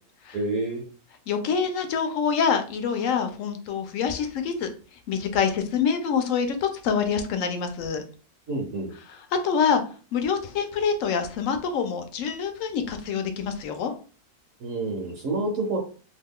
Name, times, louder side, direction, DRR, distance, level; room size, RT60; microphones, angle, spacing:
voice 1, 0.3-0.8 8.5-8.9 14.6-15.8, right 2 dB, 65° right, 1 dB, 1.0 m, -28 dB
voice 2, 1.3-4.7 5.1-8.0 9.4-9.8 10.1-13.9, left 6 dB, 70° left, 7 dB, 0.8 m, -26 dB
2.8 x 2.3 x 3.5 m, 0.38 s
omnidirectional pair, 1.6 m